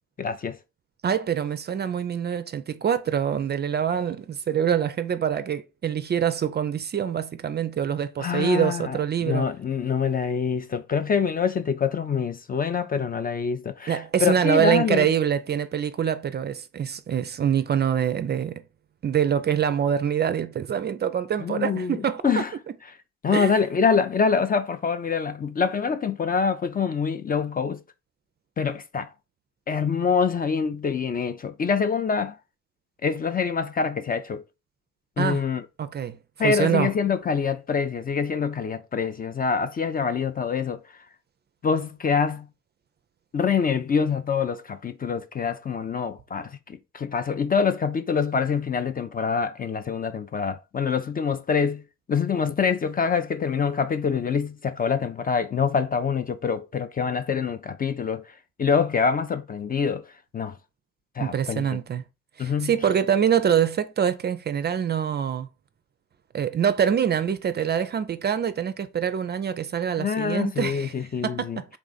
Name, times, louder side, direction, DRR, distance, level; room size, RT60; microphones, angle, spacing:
voice 1, 0.2-0.6 8.2-15.1 21.4-22.5 23.2-27.8 28.6-29.1 29.7-32.4 33.0-34.4 35.2-35.6 36.4-40.8 41.6-42.5 43.3-51.8 52.1-58.2 58.6-60.0 60.3-60.6 61.2-61.7 62.4-62.7 70.0-71.6, left 6 dB, 30° left, 0.4 m, -25 dB
voice 2, 1.0-9.5 13.9-18.6 19.0-22.4 23.3-23.5 35.2-35.4 35.8-36.2 36.4-36.9 61.2-62.0 62.4-65.5 66.3-70.9 71.2-71.8, right 8 dB, 35° right, 0.4 m, -25 dB
3.5 x 2.4 x 3.9 m
supercardioid pair, 60°, 31 cm